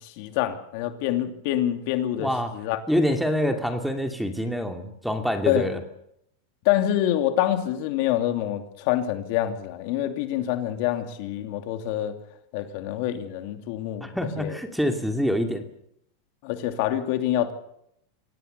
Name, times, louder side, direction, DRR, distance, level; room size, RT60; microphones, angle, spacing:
voice 1, 0.0-2.8 5.5-5.7 6.6-12.2 12.5-14.1 14.4-14.6 16.4-17.5, left 12 dB, 55° left, 7 dB, 2.8 m, -26 dB
voice 2, 2.1-2.5 2.9-5.8 14.0-15.6, equal, ahead, 5 dB, 2.6 m, -26 dB
25.5 x 18.0 x 6.9 m, 0.75 s
supercardioid pair, 135°, 0 cm